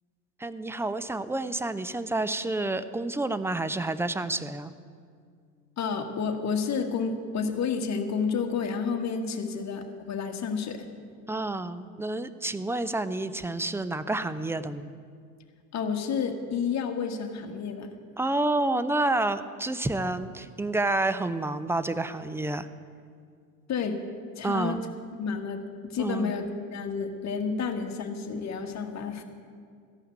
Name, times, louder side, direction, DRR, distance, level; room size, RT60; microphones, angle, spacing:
voice 1, 0.4-4.7 11.3-14.9 18.2-22.7 24.4-24.8 26.0-26.3, right 2 dB, 5° right, 13 dB, 0.4 m, -29 dB
voice 2, 5.8-10.9 15.7-17.9 23.7-24.0 24.4-24.8 25.2-29.2, left 5 dB, 40° left, 4 dB, 1.5 m, -30 dB
14.0 x 5.7 x 9.3 m, 2.1 s
hypercardioid pair, 80°, 42 cm